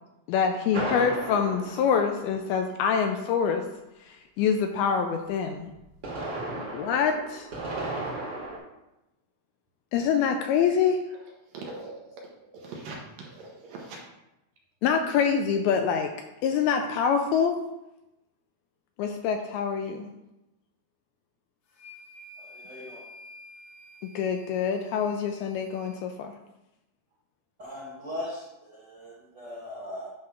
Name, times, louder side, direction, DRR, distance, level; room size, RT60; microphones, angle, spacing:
voice 1, 0.3-3.6 4.1-5.7 6.5-7.5 9.9-11.0 14.8-16.1 16.4-17.5 19.0-20.1 24.2-26.3, left 7 dB, 80° left, 5 dB, 2.2 m, -25 dB
sound 1, 0.7-2.8 5.7-8.6, right 2 dB, 40° right, 1.5 m, -35 dB
voice 2, 6.2-6.6 11.5-12.3 12.5-14.1, right 3 dB, 65° right, -1 dB, 2.4 m, -42 dB
sound 2, 21.7-26.0, left 1 dB, 65° left, 1.7 m, -50 dB
voice 3, 22.4-23.0 27.6-30.1, left 1 dB, 85° right, -8 dB, 0.9 m, -39 dB
9.6 x 3.3 x 5.8 m, 0.93 s
omnidirectional pair, 4.8 m